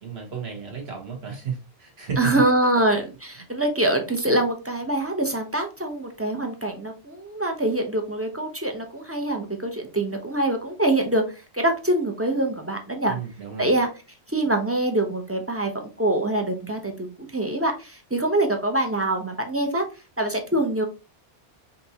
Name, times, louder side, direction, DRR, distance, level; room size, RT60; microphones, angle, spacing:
voice 1, 0.0-2.3 13.0-13.7, right 6 dB, 60° right, 2 dB, 1.5 m, -33 dB
voice 2, 2.2-11.2 11.5-13.2 13.6-13.9 14.3-19.8 20.2-20.8, right 1 dB, 15° right, 3 dB, 0.5 m, -24 dB
5.4 x 2.7 x 2.8 m, 0.32 s
omnidirectional pair, 1.2 m